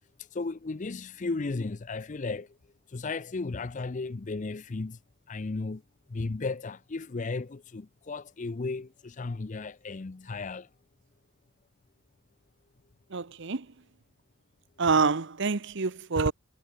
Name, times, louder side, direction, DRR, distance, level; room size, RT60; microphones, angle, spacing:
voice 1, 0.2-2.6 2.9-5.0 5.3-5.8 6.1-10.7, left 3 dB, 35° left, 0.5 m, -35 dB
voice 2, 13.1-13.7 14.8-16.3, right 4 dB, 55° right, 0.9 m, -26 dB
head